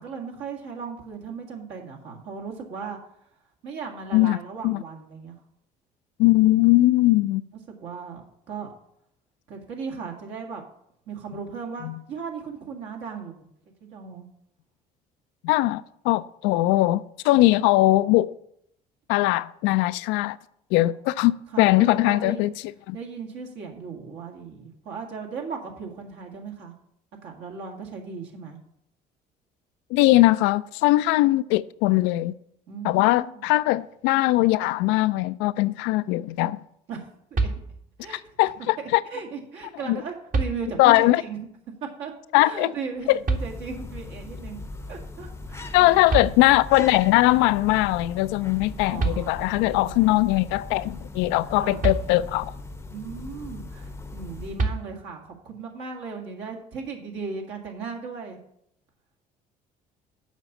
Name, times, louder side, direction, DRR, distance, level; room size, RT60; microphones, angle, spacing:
voice 1, 0.0-3.0 3.6-5.3 7.5-8.7 9.5-10.6 11.1-13.5 13.8-14.3 21.0-21.1 21.5-22.5 22.9-26.7 27.2-28.6 32.7-33.5 36.9-37.1 37.4-37.5 38.0-38.2 39.1-41.5 41.8-44.6 44.9-46.2 48.8-50.0 51.5-51.9 52.9-58.4, right 5 dB, 65° right, 2.1 m, -37 dB
voice 2, 6.2-7.4 11.8-11.9 15.4-18.3 19.1-20.4 20.7-22.5 22.9-23.0 29.9-32.3 32.8-36.6 38.1-39.0 39.9-40.0 40.8-41.2 42.3-42.7 43.1-43.2 45.7-52.5, left 18 dB, 70° left, 0.4 m, -20 dB
sound 1, 37.3-38.1 39.6-39.7 40.3-41.1 43.3-44.0 45.8-45.9 46.1-46.9 48.6-48.7 49.0-49.7 51.8-52.6 54.6-55.3, right 3 dB, 40° right, 1.5 m, -28 dB
sound 2, 43.0-54.9, left 2 dB, 15° left, 0.7 m, -39 dB
7.3 x 5.5 x 7.2 m
hypercardioid pair, 60°, 20 cm